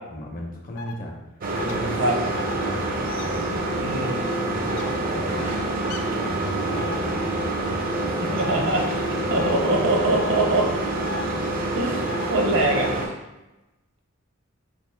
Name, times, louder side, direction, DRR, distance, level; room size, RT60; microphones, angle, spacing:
voice 1, 0.1-1.1 1.5-3.0 3.2-4.0 4.4-5.6 6.0-7.7 8.0-8.4 9.2-9.5, left 1 dB, 40° left, 0 dB, 0.7 m, -36 dB
sound 1, 0.8-0.9 1.6-1.8 2.3-2.5 3.1-3.3 4.7-4.9 5.8-6.0 6.8-7.0 8.4-8.6 9.3-9.5 10.2-10.4 11.0-11.3 12.1-12.3 12.7-12.9, left 5 dB, 90° left, 0.4 m, -35 dB
sound 2, 1.4-13.1, right 2 dB, 45° right, 0.5 m, -27 dB
voice 2, 3.8-4.3 8.3-8.8 9.3-10.7 11.7-13.1, right 2 dB, 65° right, 1 dB, 0.8 m, -23 dB
4.3 x 2.5 x 3.2 m, 1.0 s
head